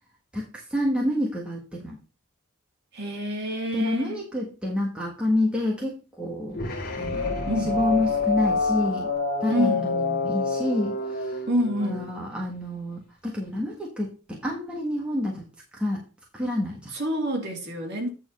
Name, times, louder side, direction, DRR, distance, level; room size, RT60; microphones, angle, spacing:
voice 1, 0.3-2.0 3.7-6.6 7.0-9.1 9.4-11.4 11.8-15.5 15.7-16.0 16.3-16.9, left 1 dB, 5° right, 1.4 m, -28 dB
voice 2, 2.9-4.2 7.5-7.8 9.5-9.9 11.5-12.0 16.9-18.1, equal, 50° right, 2.4 m, -27 dB
sound 1, 6.5-12.1, left 3 dB, 45° left, 1.8 m, -27 dB
9.0 x 4.3 x 5.4 m
head